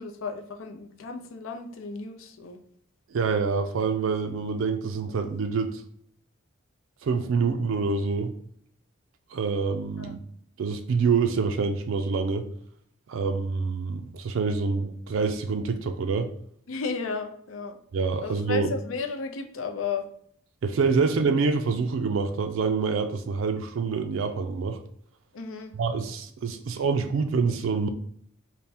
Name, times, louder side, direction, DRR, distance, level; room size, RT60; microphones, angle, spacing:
voice 1, 0.0-2.6 10.0-10.1 16.7-17.8 18.2-20.1 21.0-21.1 25.3-25.7, left 4 dB, 80° left, 5 dB, 0.5 m, -34 dB
voice 2, 3.1-5.8 7.0-8.3 9.3-10.2 10.6-12.5 13.1-16.3 17.9-18.7 20.6-24.8 25.8-27.9, right 4 dB, 70° right, 7 dB, 0.4 m, -26 dB
3.4 x 2.1 x 4.1 m, 0.65 s
head